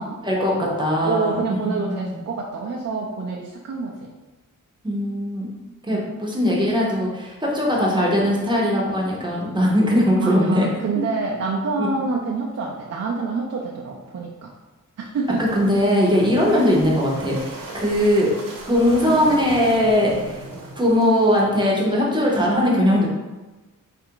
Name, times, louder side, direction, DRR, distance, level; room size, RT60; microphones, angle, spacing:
voice 1, 0.0-0.8 1.0-4.1 5.9-6.1 10.2-14.5 15.0-15.4 16.5-16.6, right 4 dB, 50° right, -2 dB, 0.5 m, -27 dB
voice 2, 0.8-2.2 4.8-5.5 5.9-10.7 11.8-11.9 15.4-18.3 18.6-20.5 20.8-23.1, equal, 15° right, -3 dB, 0.8 m, -20 dB
sound 1, 15.2-21.4, right 2 dB, 85° right, 0.9 m, -38 dB
4.3 x 2.5 x 4.5 m, 1.2 s
wide cardioid pair, 180°, 32 cm